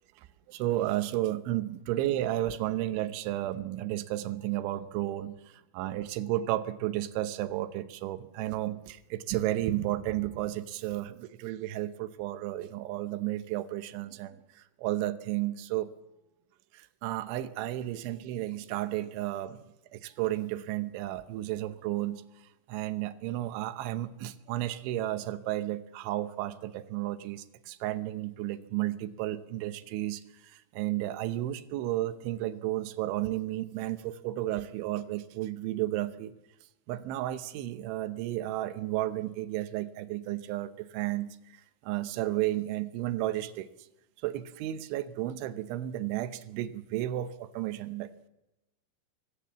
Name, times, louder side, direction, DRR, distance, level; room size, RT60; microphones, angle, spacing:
voice 1, 0.5-5.4 5.7-14.4 14.8-15.9 16.7-19.6 19.9-22.2 22.7-30.2 30.5-36.3 36.9-41.4 41.8-43.7 44.2-48.3, right 14 dB, 90° right, 11 dB, 3.4 m, -32 dB
25.5 x 17.0 x 7.4 m, 0.95 s
omnidirectional pair, 5.3 m